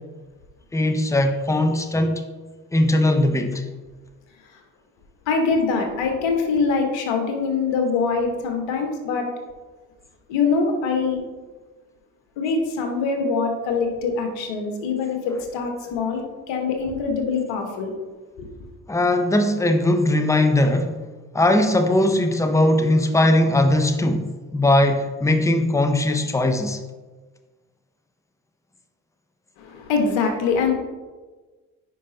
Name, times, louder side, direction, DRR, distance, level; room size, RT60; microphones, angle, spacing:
voice 1, 0.7-2.2 2.7-3.6 18.9-20.9 21.3-26.8, left 1 dB, 5° left, 7 dB, 0.8 m, -19 dB
voice 2, 5.3-9.3 10.3-11.2 12.4-16.2 16.5-18.0 18.4-18.5 29.6-30.7, left 4 dB, 70° left, 3 dB, 1.4 m, -23 dB
9.8 x 5.0 x 2.8 m, 1.3 s
hypercardioid pair, 50°, 46 cm